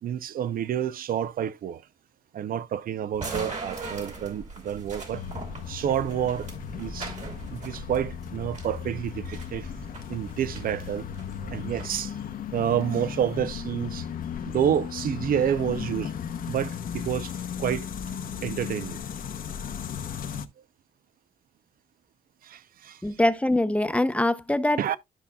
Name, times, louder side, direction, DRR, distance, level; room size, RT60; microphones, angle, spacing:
voice 1, 0.0-1.8 2.3-5.2 5.7-7.2 7.5-9.7 10.1-11.1 11.4-12.2 12.5-14.1 14.4-16.1 16.5-17.9 18.4-19.0 22.4-23.3 24.8-25.0, right 9 dB, 65° right, 0.6 m, -29 dB
sound 1, 3.1-11.9, right 3 dB, 50° right, 3.1 m, -40 dB
sound 2, 5.1-20.5, left 8 dB, 65° left, 0.8 m, -36 dB
voice 2, 23.0-25.0, left 1 dB, 10° left, 0.7 m, -23 dB
12.5 x 5.4 x 2.3 m
cardioid pair, 95°, 16 cm